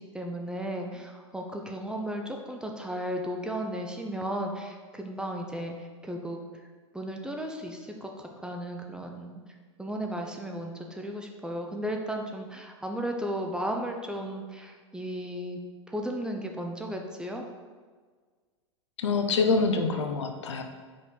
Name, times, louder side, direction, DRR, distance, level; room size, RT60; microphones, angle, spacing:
voice 1, 0.0-6.4 6.9-9.4 9.8-15.6 15.9-17.4, equal, 5° right, 2 dB, 0.6 m, -35 dB
voice 2, 19.0-20.6, left 4 dB, 65° left, 5 dB, 0.7 m, -25 dB
5.2 x 4.1 x 5.1 m, 1.5 s
figure-of-eight pair, 95°, 16 cm